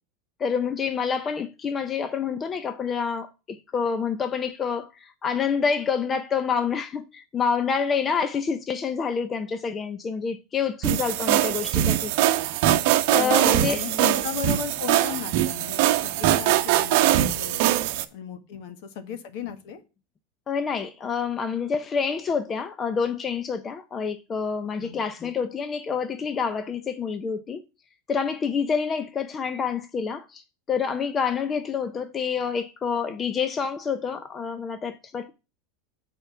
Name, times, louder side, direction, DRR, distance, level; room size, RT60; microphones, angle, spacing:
voice 1, 0.4-12.1 13.1-14.2 20.5-27.6 28.1-30.4 30.7-35.3, left 6 dB, 20° left, 0.5 m, -27 dB
sound 1, 10.8-18.0, right 13 dB, 55° right, 0.8 m, -22 dB
voice 2, 13.1-17.7 18.1-19.8 24.8-25.0, left 8 dB, 55° left, 1.3 m, -36 dB
8.0 x 4.5 x 6.8 m
supercardioid pair, 165°, 0 cm